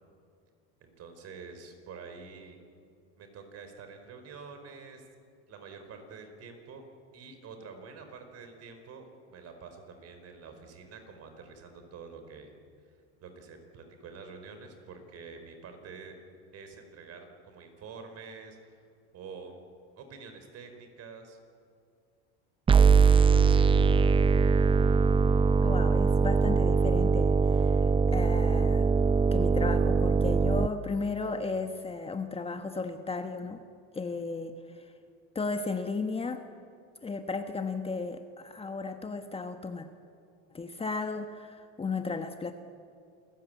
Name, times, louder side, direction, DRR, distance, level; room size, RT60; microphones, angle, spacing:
voice 1, 0.8-2.6 3.2-5.0 5.5-6.8 7.1-12.5 13.2-16.2 16.5-18.6 19.1-19.6 20.0-21.4 22.8-23.8, right 5 dB, 45° right, 6 dB, 4.8 m, -47 dB
sound 1, 22.7-30.7, right 5 dB, 15° right, 0.5 m, -22 dB
voice 2, 25.6-28.9 29.3-33.6 33.9-34.9 35.3-36.4 37.0-39.9 40.5-42.5, left 4 dB, 15° left, 7 dB, 1.3 m, -35 dB
28.5 x 14.5 x 9.5 m, 2.3 s
supercardioid pair, 105°, 34 cm